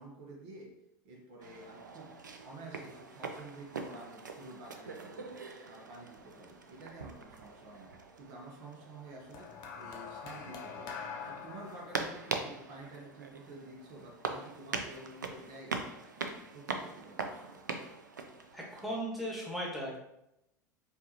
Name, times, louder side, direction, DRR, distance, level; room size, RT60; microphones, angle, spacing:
voice 1, 0.0-2.2 2.4-5.3 5.6-15.8 16.1-17.6, right 2 dB, 55° right, -1 dB, 1.0 m, -50 dB
sound 1, 1.4-18.9, right 4 dB, 90° right, 0.4 m, -43 dB
sound 2, 9.3-13.8 14.7-14.9, left 6 dB, 45° left, 0.7 m, -45 dB
voice 2, 18.5-20.0, equal, ahead, -4 dB, 1.4 m, -37 dB
4.4 x 2.7 x 3.0 m, 0.83 s
hypercardioid pair, 85°, 10 cm